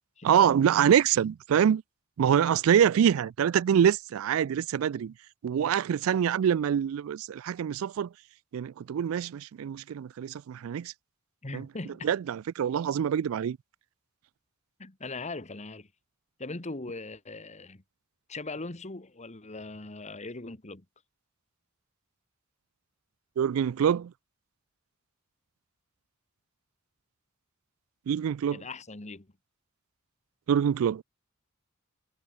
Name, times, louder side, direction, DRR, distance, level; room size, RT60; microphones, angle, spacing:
voice 1, 0.2-1.8 2.2-5.1 5.4-8.1 8.5-10.9 11.5-11.7 12.0-13.6 23.4-24.1 28.1-28.6 30.5-31.0, right 8 dB, 75° right, 0.3 m, -25 dB
voice 2, 11.4-12.1 14.8-15.9 16.4-17.8 18.3-20.8 28.5-29.3, left 3 dB, 35° left, 1.7 m, -40 dB
head